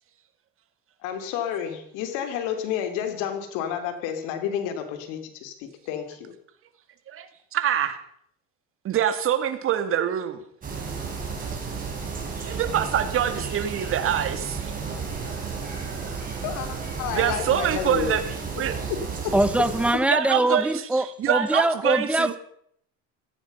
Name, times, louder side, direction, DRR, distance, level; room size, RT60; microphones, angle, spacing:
voice 1, 1.0-6.3 16.4-18.2, left 9 dB, 75° left, 7 dB, 3.3 m, -30 dB
voice 2, 7.1-8.0 8.8-10.4 12.5-14.7 17.1-18.2 18.6-18.8 20.1-22.3, right 9 dB, 45° right, 9 dB, 2.3 m, -25 dB
sound 1, 10.6-19.9, right 5 dB, 25° right, 5.6 m, -32 dB
voice 3, 19.3-22.4, right 1 dB, 5° right, 14 dB, 0.8 m, -23 dB
17.0 x 15.0 x 5.7 m, 0.68 s
cardioid pair, 125°, 31 cm